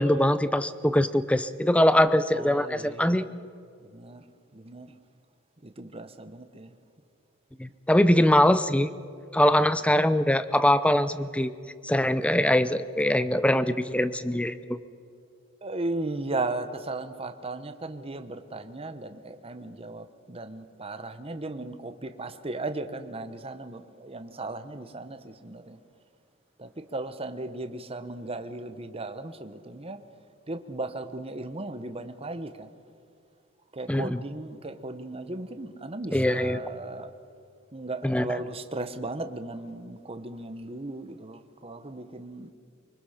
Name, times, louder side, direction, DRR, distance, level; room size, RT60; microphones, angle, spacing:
voice 1, 0.0-3.2 7.6-8.9 9.3-11.5 11.8-14.8 33.9-34.2 36.1-36.6 38.0-38.4, left 1 dB, 5° left, 13 dB, 0.6 m, -22 dB
voice 2, 2.3-3.3 3.8-4.2 4.5-4.9 5.6-6.7 15.6-25.8 26.6-30.0 30.5-32.7 33.7-37.1 37.7-42.5, right 2 dB, 30° right, 8 dB, 1.1 m, -36 dB
24.5 x 24.5 x 5.8 m, 2.4 s
head